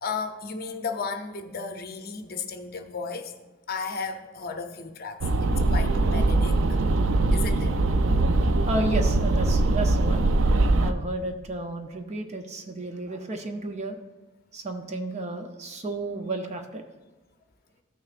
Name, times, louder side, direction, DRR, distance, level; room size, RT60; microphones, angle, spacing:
voice 1, 0.0-3.3 3.7-6.8 7.3-7.8 10.6-10.7, left 5 dB, 50° left, 7 dB, 0.7 m, -34 dB
sound 1, 5.2-10.9, right 2 dB, 80° right, 0.5 m, -22 dB
voice 2, 8.7-10.3 10.8-14.0 14.5-16.8, right 2 dB, 35° right, 5 dB, 0.6 m, -32 dB
14.0 x 6.2 x 2.5 m, 1.2 s
head